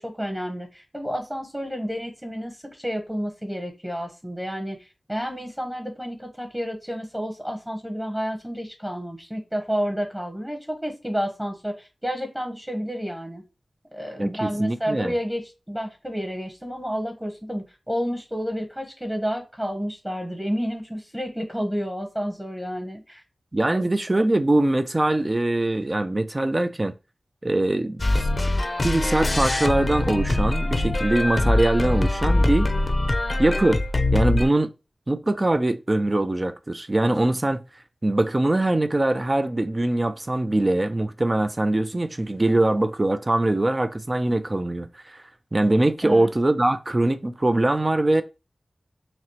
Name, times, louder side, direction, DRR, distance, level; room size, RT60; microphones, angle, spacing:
voice 1, 0.0-13.4 13.9-23.2 23.6-23.8 46.0-46.3, equal, 10° right, 1.0 m, -30 dB
voice 2, 14.2-15.1 23.5-27.0 27.4-28.3 28.8-32.7 33.4-33.8 34.1-34.7 35.1-37.6 38.0-45.2 45.5-48.2, right 2 dB, 30° right, 0.3 m, -22 dB
sound 1, 28.0-34.5, left 2 dB, 40° left, 0.5 m, -23 dB
5.8 x 2.1 x 2.9 m
wide cardioid pair, 85°, 0 cm